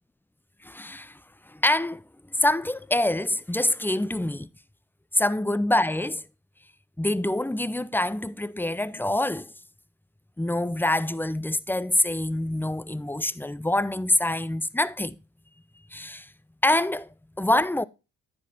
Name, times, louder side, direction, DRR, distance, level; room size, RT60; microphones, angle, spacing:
voice 1, 0.6-1.2 1.5-2.0 2.4-4.5 5.1-6.2 7.0-9.5 10.4-15.1 15.9-16.3 16.6-17.1 17.4-17.8, left 1 dB, 5° left, 0.5 m, -25 dB
10.0 x 7.8 x 2.7 m
hypercardioid pair, 45°, 40 cm